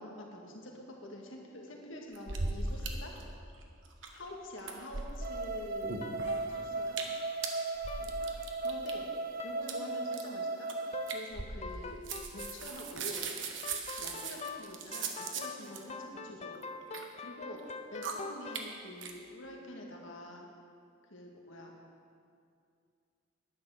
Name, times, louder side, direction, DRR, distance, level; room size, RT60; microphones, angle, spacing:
voice 1, 0.0-3.2 4.1-6.1 6.5-7.0 8.0-9.1 9.4-12.1 12.3-13.4 13.9-16.6 17.2-20.5 21.1-21.7, left 1 dB, 75° left, 0 dB, 2.0 m, -46 dB
sound 1, 2.1-2.9 3.1-3.2 3.5-4.3 4.6-5.4 5.8-6.5 6.9-7.2 7.4-8.9 9.6-9.7 10.1-10.3 10.7-10.8 11.1-11.8 12.0-15.8 16.5-17.0 17.6-17.7 18.0-18.1 18.5-18.6 19.0-19.1, right 4 dB, 70° right, 1.3 m, -38 dB
sound 2, 5.2-11.2, right 3 dB, 50° right, 0.5 m, -37 dB
sound 3, 6.0-7.5 7.9-8.1 8.4-8.9 9.4-9.6 9.9-10.5 10.9-11.1 11.4-18.7, left 4 dB, 35° left, 0.6 m, -45 dB
10.5 x 10.0 x 6.6 m, 2.4 s
head